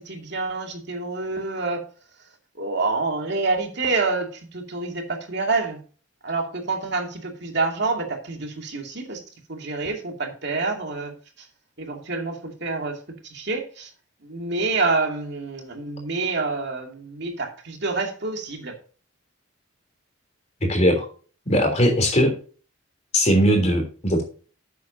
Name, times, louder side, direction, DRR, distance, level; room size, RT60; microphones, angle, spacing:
voice 1, 0.0-1.8 2.6-5.8 6.2-9.2 9.5-11.5 11.8-13.0 13.2-13.9 14.2-18.7, right 3 dB, 55° right, 3 dB, 2.5 m, -27 dB
voice 2, 20.6-21.1 21.5-22.4 23.1-24.2, equal, 35° left, 4 dB, 3.4 m, -19 dB
12.5 x 8.4 x 2.7 m, 0.38 s
head